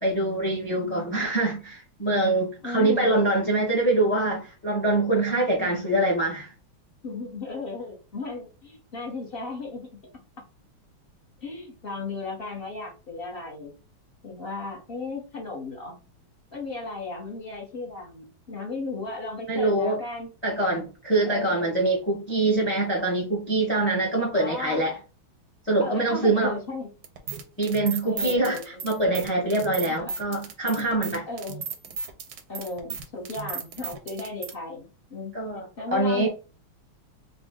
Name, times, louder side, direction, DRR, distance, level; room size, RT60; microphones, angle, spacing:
voice 1, 0.0-6.5 19.5-20.0 20.4-25.0 25.7-26.6 27.6-31.2 35.3-35.6 35.9-36.3, right 2 dB, 10° left, 0.8 m, -24 dB
voice 2, 0.8-1.2 2.6-3.2 5.6-6.0 7.0-9.9 11.4-13.7 14.2-16.0 16.5-20.3 21.2-21.8 24.4-24.9 25.8-26.9 28.0-28.9 29.9-30.1 31.3-31.8 32.5-35.3 35.8-36.3, left 3 dB, 35° left, 1.0 m, -35 dB
sound 1, 27.0-34.5, right 6 dB, 65° right, 1.0 m, -35 dB
4.1 x 2.4 x 3.6 m
omnidirectional pair, 2.3 m